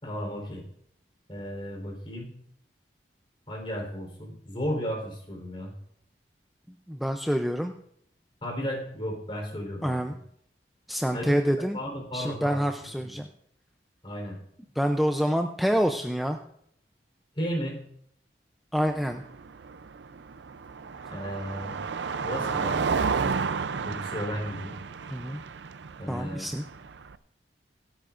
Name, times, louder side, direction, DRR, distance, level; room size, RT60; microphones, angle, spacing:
voice 1, 0.0-0.6 1.3-2.3 3.5-5.7 8.4-10.0 11.1-11.4 11.7-12.6 13.0-13.2 14.0-14.4 17.4-17.8 21.1-21.8 22.2-22.8 23.2-23.4 23.8-24.8 26.0-26.5, equal, 30° left, 0 dB, 3.9 m, -34 dB
voice 2, 6.9-7.7 9.8-10.1 10.9-11.8 12.1-13.3 14.8-16.4 18.7-19.2 25.1-25.4 26.1-26.6, equal, ahead, 4 dB, 0.5 m, -27 dB
Car passing by, 18.9-27.2, right 5 dB, 90° right, 0.5 m, -32 dB
25.0 x 9.2 x 2.5 m, 0.70 s
head